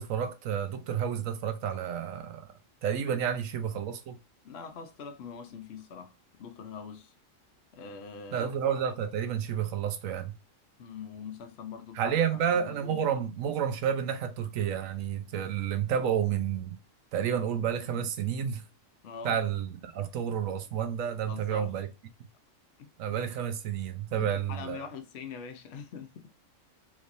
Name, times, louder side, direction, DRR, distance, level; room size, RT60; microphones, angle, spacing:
voice 1, 0.0-2.5 2.8-4.2 8.3-10.3 11.9-16.8 17.1-18.6 19.2-21.9 23.0-24.9, right 8 dB, 85° right, 1.0 m, -30 dB
voice 2, 4.4-6.1 6.4-7.1 7.7-8.5 10.8-13.2 19.0-19.4 21.2-21.7 22.8-22.9 24.2-26.2, left 6 dB, 60° left, 0.9 m, -43 dB
3.4 x 3.0 x 2.5 m
omnidirectional pair, 1.4 m